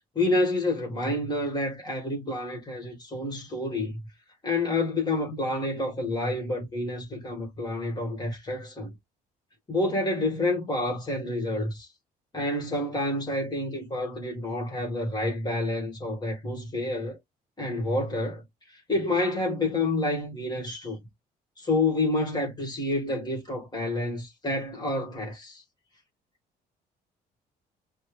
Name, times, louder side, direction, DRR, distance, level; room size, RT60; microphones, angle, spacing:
voice 1, 0.1-4.0 4.4-8.9 9.7-11.9 12.3-17.2 17.6-18.4 18.7-21.0 21.6-25.6, left 2 dB, 25° left, 1.5 m, -28 dB
5.2 x 2.1 x 3.2 m
cardioid pair, 110°, 17 cm